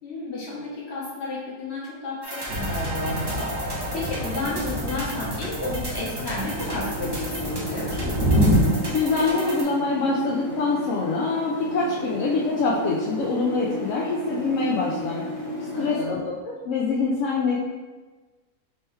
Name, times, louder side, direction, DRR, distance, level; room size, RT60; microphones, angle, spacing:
voice 1, 0.0-8.1 15.7-16.2, left 2 dB, 45° left, -5 dB, 1.3 m, -32 dB
sound 1, 2.2-9.6, right 1 dB, 25° right, 0.6 m, -34 dB
Thunder / Rain, 2.5-8.6, equal, 60° right, 1.4 m, -27 dB
sound 2, 6.4-16.0, left 1 dB, 20° left, 0.6 m, -33 dB
voice 2, 8.9-15.2 15.8-16.3 16.6-17.6, left 4 dB, 65° left, -4 dB, 0.8 m, -25 dB
4.4 x 3.0 x 3.2 m, 1.3 s
omnidirectional pair, 1.6 m